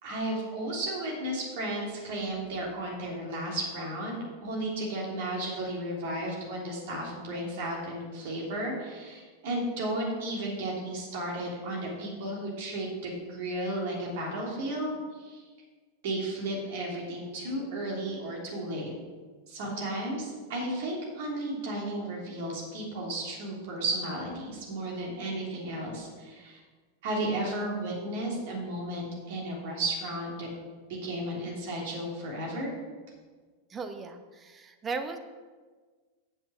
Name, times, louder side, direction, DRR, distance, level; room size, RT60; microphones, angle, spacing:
voice 1, 0.0-14.9 15.2-15.5 16.0-18.9 19.5-26.6 27.0-30.5 30.9-32.7, right 1 dB, 50° right, -3 dB, 3.3 m, -34 dB
voice 2, 33.7-35.2, right 4 dB, 20° right, 7 dB, 0.9 m, -37 dB
9.0 x 7.1 x 6.3 m, 1.4 s
figure-of-eight pair, 90°, 0 cm